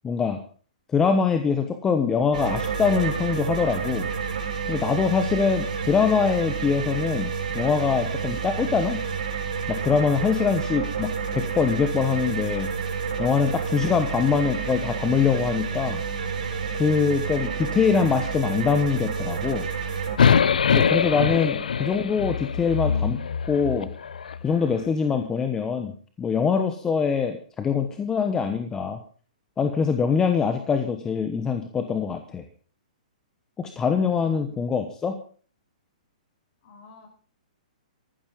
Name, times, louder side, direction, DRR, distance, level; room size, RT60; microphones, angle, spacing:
voice 1, 0.0-0.4 0.9-4.1 4.7-9.0 9.7-12.7 13.2-16.0 16.7-19.7 20.7-23.2 23.5-23.9 24.4-25.9 26.2-29.0 29.6-32.4 33.6-35.2, left 6 dB, 15° left, 6 dB, 1.1 m, -23 dB
sound 1, 2.3-20.2, right 6 dB, 75° right, 4.9 m, -29 dB
sound 2, 20.2-24.4, left 7 dB, 85° left, 0.9 m, -23 dB
voice 2, 36.6-37.1, left 2 dB, 45° left, 4 dB, 6.3 m, -47 dB
14.0 x 13.5 x 5.3 m, 0.42 s
hypercardioid pair, 155°, 4 cm